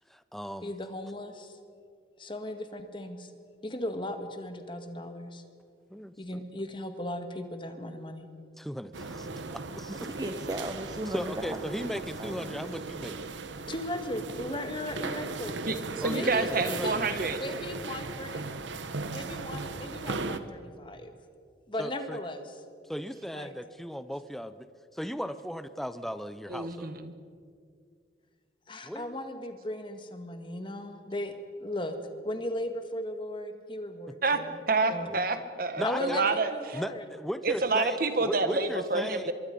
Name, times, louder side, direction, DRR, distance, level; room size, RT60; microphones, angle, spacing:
voice 1, 0.1-0.7 5.9-6.4 8.6-10.1 11.1-13.3 16.0-17.3 21.8-22.2 22.9-24.7 24.9-26.9 28.8-29.2 34.1-34.2 35.0-35.2 35.8-36.2 36.7-39.3, equal, ahead, 12 dB, 0.6 m, -37 dB
voice 2, 0.6-1.6 2.2-3.3 3.6-5.4 6.2-8.3 13.7-15.6 16.1-17.0 17.4-18.4 19.1-21.1 21.7-22.5 23.3-23.5 28.7-31.3 31.6-31.9 32.2-34.6 34.9-35.1 35.8-37.0, left 1 dB, 25° left, 7 dB, 1.7 m, -37 dB
sound 1, 8.9-20.4, right 3 dB, 80° right, 1.1 m, -37 dB
voice 3, 9.9-12.6, right 1 dB, 20° right, 6 dB, 0.9 m, -37 dB
voice 4, 15.6-17.4 26.5-27.1 34.2-34.4 34.7-36.8 37.4-39.3, right 3 dB, 50° right, 9 dB, 1.5 m, -28 dB
24.5 x 22.5 x 5.4 m, 2.2 s
head